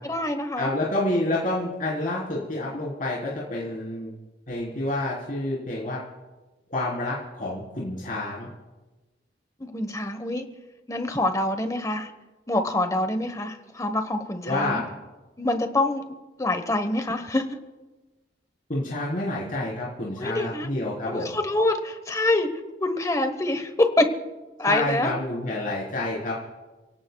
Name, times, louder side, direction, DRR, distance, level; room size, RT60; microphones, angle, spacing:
voice 1, 0.0-0.7 9.6-10.5 10.9-12.1 12.5-14.8 15.4-16.0 16.4-17.6 20.2-20.7 21.1-22.5 22.8-24.1 24.6-25.1, left 2 dB, 20° left, 8 dB, 1.1 m, -25 dB
voice 2, 0.6-4.1 4.5-6.0 6.7-8.5 14.4-14.9 18.7-21.3 24.7-26.3, left 1 dB, 50° left, -6 dB, 4.0 m, -28 dB
29.0 x 17.5 x 2.3 m, 1.2 s
head